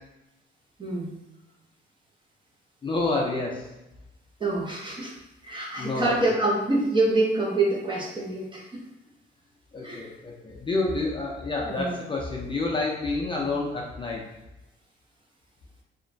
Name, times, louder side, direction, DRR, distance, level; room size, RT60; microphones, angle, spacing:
voice 1, 0.8-1.1 4.4-5.1 5.4-8.8 9.8-10.0 11.7-11.9, right 2 dB, 25° right, -2 dB, 0.6 m, -26 dB
voice 2, 2.8-3.6 5.8-6.2 9.7-14.2, left 3 dB, 25° left, -2 dB, 0.5 m, -28 dB
2.9 x 2.1 x 2.6 m, 0.96 s
cardioid pair, 90°, 20 cm